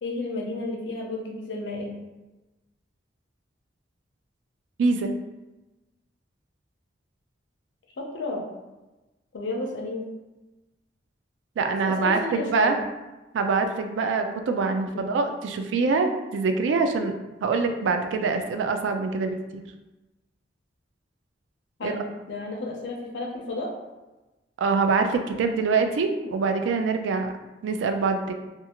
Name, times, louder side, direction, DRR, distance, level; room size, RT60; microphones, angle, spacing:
voice 1, 0.0-1.9 8.0-8.4 9.3-10.1 11.8-12.8 14.9-15.1 21.8-23.7, left 2 dB, 75° left, 1 dB, 0.5 m, -32 dB
voice 2, 4.8-5.1 11.6-12.8 13.3-17.1 17.4-19.6 21.8-22.0 24.6-27.3 27.6-28.3, right 4 dB, 80° right, 6 dB, 0.3 m, -24 dB
2.5 x 2.4 x 2.8 m, 1.1 s
head